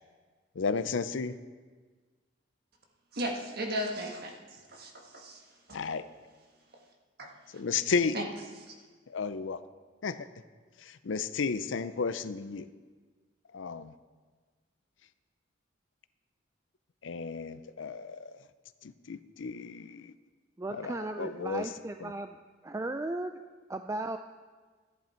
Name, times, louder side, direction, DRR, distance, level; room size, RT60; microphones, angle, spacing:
voice 1, 0.6-1.3 5.7-6.0 7.5-8.2 9.1-9.6 10.0-10.3 10.8-12.7 13.5-13.9 17.0-18.4 18.8-20.1 20.7-21.7 22.0-22.1, left 5 dB, 80° left, 13 dB, 0.6 m, -33 dB
voice 2, 3.1-4.3 4.7-5.4 5.7-5.8 7.2-7.3 8.1-8.3, right 1 dB, 55° right, 1 dB, 1.7 m, -35 dB
voice 3, 20.6-22.4 22.6-23.4 23.7-24.2, right 2 dB, 15° right, 7 dB, 0.3 m, -36 dB
14.5 x 10.0 x 4.5 m, 1.4 s
head